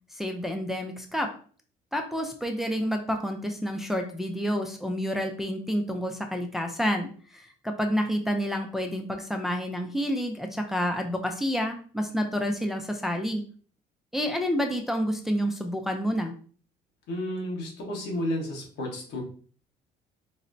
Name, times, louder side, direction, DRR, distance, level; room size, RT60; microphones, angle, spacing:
voice 1, 0.1-1.3 1.9-13.4 14.1-16.3, equal, ahead, 4 dB, 0.4 m, -29 dB
voice 2, 17.1-19.2, left 1 dB, 80° left, -1 dB, 1.2 m, -32 dB
4.0 x 2.1 x 2.5 m, 0.43 s
cardioid pair, 110°, 17 cm